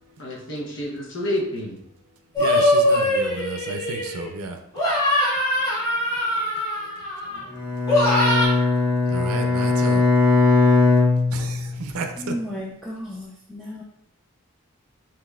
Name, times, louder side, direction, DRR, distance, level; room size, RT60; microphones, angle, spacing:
voice 1, 0.2-1.8, left 1 dB, 60° left, -2 dB, 0.9 m, -29 dB
sound 1, 2.4-4.3 4.7-7.4 7.9-8.5, left 1 dB, 20° left, 1.3 m, -22 dB
voice 2, 2.4-4.6 5.6-6.5 6.8-6.9 7.2-7.5 8.4-8.5 9.1-10.1 10.4-10.6 11.3-12.3, right 4 dB, 85° right, 5 dB, 0.5 m, -33 dB
Bowed string instrument, 7.5-11.9, left 3 dB, 40° left, 1.5 m, -19 dB
voice 3, 12.2-13.8, equal, ahead, -7 dB, 0.4 m, -33 dB
5.0 x 3.0 x 2.4 m, 0.76 s
head